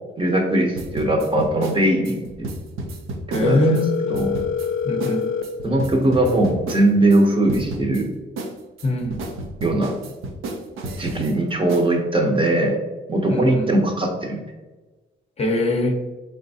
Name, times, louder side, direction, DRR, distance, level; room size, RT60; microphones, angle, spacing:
voice 1, 0.2-2.5 3.3-3.8 4.1-4.3 5.6-8.1 9.6-9.9 11.0-12.8 13.1-14.4, right 1 dB, 25° right, 3 dB, 0.7 m, -20 dB
sound 1, 0.8-3.9 4.1-4.7 5.0-5.2 5.4-7.2 7.5-8.0 8.4-11.3 11.7-11.9, right 2 dB, 80° right, 0.6 m, -32 dB
voice 2, 3.3-3.9 4.8-5.3 8.8-9.2 13.3-13.8 15.4-16.0, left 1 dB, 30° left, 2 dB, 0.6 m, -22 dB
Telephone, 3.4-5.4, left 7 dB, 85° left, 0.5 m, -25 dB
3.8 x 3.4 x 2.7 m, 1.2 s
cardioid pair, 85°, 21 cm